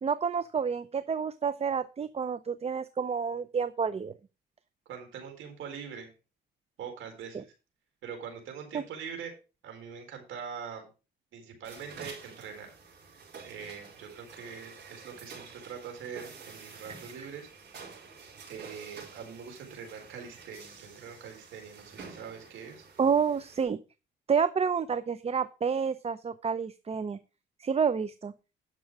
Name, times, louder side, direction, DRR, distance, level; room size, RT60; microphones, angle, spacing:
voice 1, 0.0-4.1 7.3-7.4 8.7-8.8 23.0-23.8 24.3-27.2 27.6-28.3, right 6 dB, 30° right, 13 dB, 0.6 m, -29 dB
voice 2, 4.9-6.1 6.8-7.5 8.0-9.3 9.6-10.9 11.3-12.7 13.4-17.5 18.5-22.8, right 6 dB, 80° right, 4 dB, 4.3 m, -43 dB
sound 1, 11.6-23.6, right 5 dB, 60° right, 4.9 m, -49 dB
11.0 x 6.2 x 4.8 m, 0.31 s
cardioid pair, 90°, 20 cm